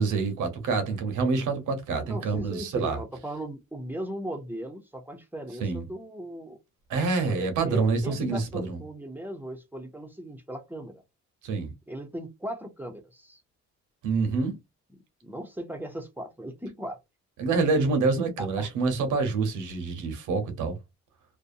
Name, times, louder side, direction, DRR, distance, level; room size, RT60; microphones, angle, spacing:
voice 1, 0.0-3.0 5.6-5.8 6.9-8.8 11.4-11.7 14.0-14.5 17.4-20.8, right 4 dB, 85° right, 1.0 m, -26 dB
voice 2, 2.1-6.6 7.3-11.0 11.9-13.4 15.2-17.0 18.4-18.7, right 1 dB, 5° right, 0.6 m, -38 dB
2.6 x 2.2 x 2.6 m
cardioid pair, 90°, 30 cm